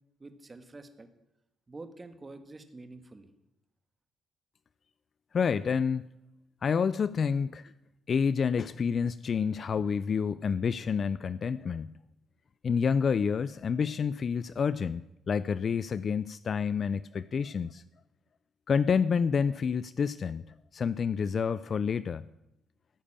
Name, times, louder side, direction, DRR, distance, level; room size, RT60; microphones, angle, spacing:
voice 1, 0.2-1.1 1.7-3.3, right 2 dB, 25° right, 8 dB, 1.5 m, -47 dB
voice 2, 5.3-6.1 6.6-7.6 8.1-11.9 12.6-17.8 18.7-20.4 20.7-22.2, left 6 dB, 45° left, 16 dB, 0.4 m, -28 dB
15.5 x 6.7 x 8.8 m, 0.86 s
cardioid pair, 90°, 0 cm